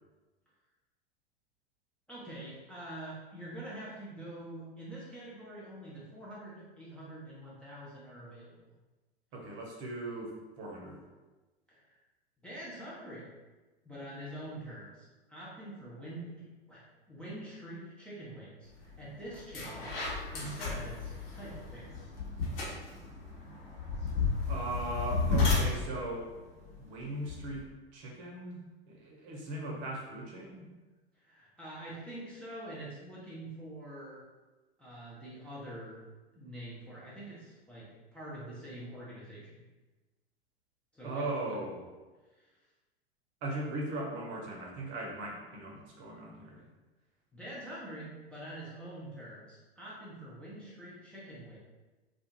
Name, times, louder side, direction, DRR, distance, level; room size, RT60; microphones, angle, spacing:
voice 1, 2.1-8.7 11.7-12.0 12.4-13.3 13.8-19.9 20.3-22.0 31.2-34.3 34.8-36.0 36.3-39.6 40.9-41.6 42.4-42.5 47.3-51.6, right 1 dB, 5° left, -9 dB, 0.4 m, -45 dB
voice 2, 9.3-11.0 24.5-26.3 26.8-27.6 27.9-30.7 41.0-41.8 43.4-46.6, right 1 dB, 35° right, -1 dB, 0.7 m, -38 dB
sound 1, 18.8-19.0 19.3-27.6, left 4 dB, 60° left, 1.1 m, -33 dB
2.4 x 2.3 x 2.9 m, 1.2 s
figure-of-eight pair, 85°, 31 cm